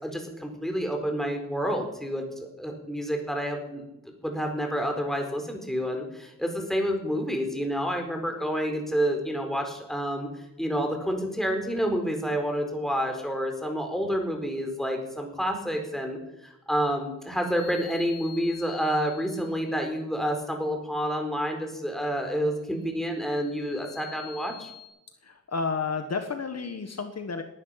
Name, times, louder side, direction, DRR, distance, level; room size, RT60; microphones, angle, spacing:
voice 1, 0.0-3.8 4.2-24.7, equal, ahead, 3 dB, 4.3 m, -29 dB
sound 1, 17.2-19.8 22.8-24.9, left 12 dB, 60° right, 3.7 m, -47 dB
voice 2, 25.2-27.4, left 4 dB, 55° left, 7 dB, 1.4 m, -31 dB
19.0 x 11.5 x 5.8 m, 0.88 s
cardioid pair, 75°, 31 cm